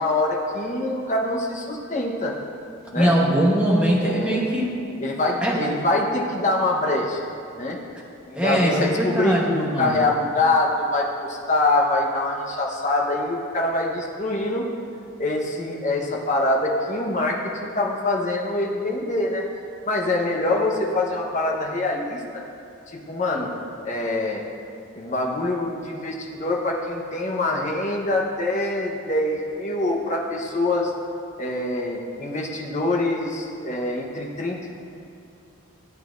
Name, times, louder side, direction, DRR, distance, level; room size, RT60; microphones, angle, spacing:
voice 1, 0.0-2.3 2.9-3.1 4.0-4.4 5.0-7.2 7.6-7.8 8.3-14.7 15.2-19.4 19.9-22.4 22.9-23.5 23.8-24.4 24.9-30.9 31.4-34.8, left 2 dB, 35° left, -1 dB, 1.1 m, -24 dB
voice 2, 2.9-4.7 5.4-5.6 8.3-9.9, right 1 dB, 5° right, -4 dB, 1.2 m, -21 dB
16.0 x 8.5 x 2.6 m, 2.5 s
head